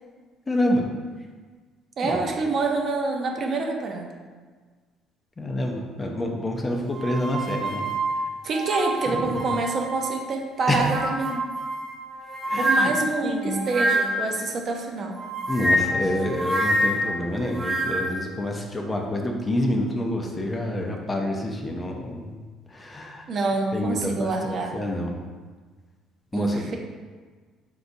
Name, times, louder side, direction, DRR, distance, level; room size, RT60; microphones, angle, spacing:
voice 1, 0.5-0.8 2.0-2.1 5.4-7.8 9.1-9.4 10.7-10.9 12.5-12.9 13.2-13.7 15.5-22.4 22.7-23.2 23.7-25.1 26.3-26.7, left 1 dB, 20° left, 2 dB, 0.5 m, -27 dB
voice 2, 2.0-4.1 8.4-11.5 12.6-15.2 23.3-24.8 26.3-26.8, right 3 dB, 45° right, 2 dB, 0.6 m, -27 dB
sound 1, 6.9-10.2 10.6-14.4 15.2-18.2, right 1 dB, 20° right, 1.0 m, -27 dB
4.6 x 3.9 x 2.6 m, 1.5 s
cardioid pair, 125°, 0 cm